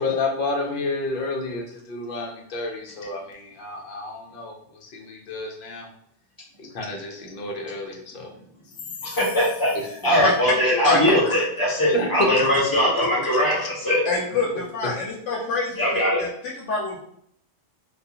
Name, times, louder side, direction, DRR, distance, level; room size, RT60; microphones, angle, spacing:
voice 1, 0.0-5.9 6.6-8.3 10.2-10.3 11.2-11.4 11.9-12.8 13.2-14.0, left 3 dB, 55° left, 1 dB, 0.7 m, -30 dB
voice 2, 9.1-9.7 10.0-14.0 15.8-16.3, equal, 40° left, -7 dB, 0.3 m, -21 dB
voice 3, 14.1-15.8 16.2-16.3 16.6-17.0, left 3 dB, 85° left, -3 dB, 0.9 m, -25 dB
2.3 x 2.3 x 2.7 m, 0.69 s
omnidirectional pair, 1.2 m